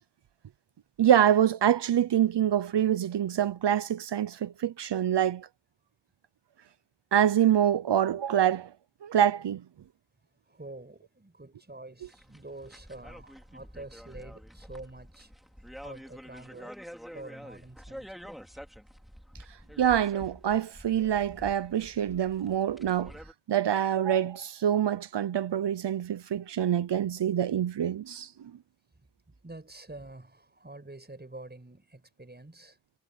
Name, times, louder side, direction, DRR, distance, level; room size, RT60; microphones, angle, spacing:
voice 1, 1.0-5.5 7.1-8.7 9.0-9.6 19.8-23.1 23.5-28.5, right 10 dB, 80° right, 0.7 m, -25 dB
voice 2, 10.4-15.3 15.8-16.7 17.1-18.6 29.4-32.8, right 2 dB, 25° right, 6.1 m, -47 dB
sound 1, 12.0-23.3, equal, ahead, 2.9 m, -47 dB
wide cardioid pair, 105°, 41 cm